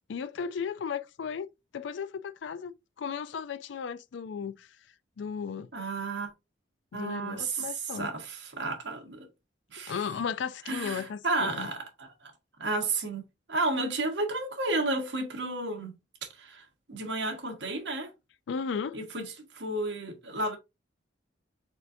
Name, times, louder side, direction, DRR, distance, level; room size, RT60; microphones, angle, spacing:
voice 1, 0.1-1.5 1.7-4.7 5.2-5.7 6.9-8.1 9.9-11.7 18.5-19.0, left 6 dB, 75° left, 0.4 m, -35 dB
voice 2, 5.7-6.3 6.9-9.3 9.7-10.0 10.7-12.3 12.6-13.2 13.5-15.9 16.2-18.1 18.9-19.2 19.5-20.6, right 2 dB, 70° right, 1.4 m, -32 dB
4.3 x 3.8 x 2.6 m
head